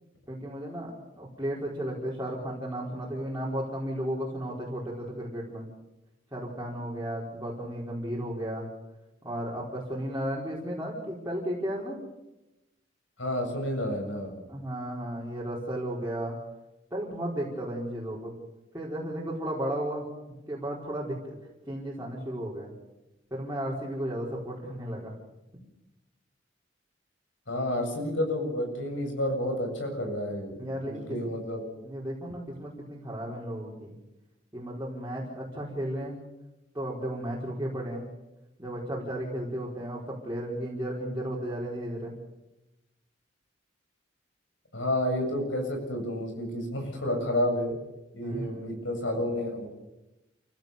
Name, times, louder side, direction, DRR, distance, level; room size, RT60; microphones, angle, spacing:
voice 1, 0.3-5.7 6.3-8.7 9.2-12.0 14.5-16.3 16.9-18.3 18.7-20.0 20.5-21.4 21.7-22.7 23.3-25.1 30.6-31.0 31.3-31.4 31.8-33.9 34.5-36.2 36.7-38.1 38.6-42.1 48.2-48.6, right 1 dB, 15° right, -5 dB, 4.7 m, -34 dB
voice 2, 13.2-14.3 27.5-31.6 44.7-47.7 48.1-49.7, left 1 dB, 90° left, 3 dB, 7.7 m, -30 dB
29.0 x 16.5 x 6.9 m, 0.95 s
head